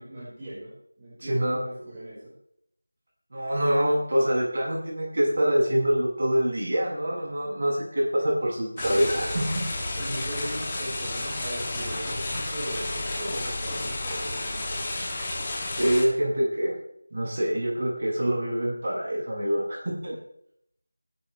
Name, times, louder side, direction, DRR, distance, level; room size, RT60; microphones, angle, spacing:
voice 1, 0.0-2.3 8.8-9.4 10.0-14.8, right 1 dB, 15° right, -9 dB, 5.3 m, -38 dB
voice 2, 1.2-1.6 3.3-9.4 15.8-16.7 17.1-20.2, equal, 40° right, -3 dB, 7.5 m, -25 dB
sound 1, 8.8-16.0, left 2 dB, 15° left, 2.6 m, -31 dB
22.0 x 12.0 x 3.4 m, 0.70 s
figure-of-eight pair, 175°, 0 cm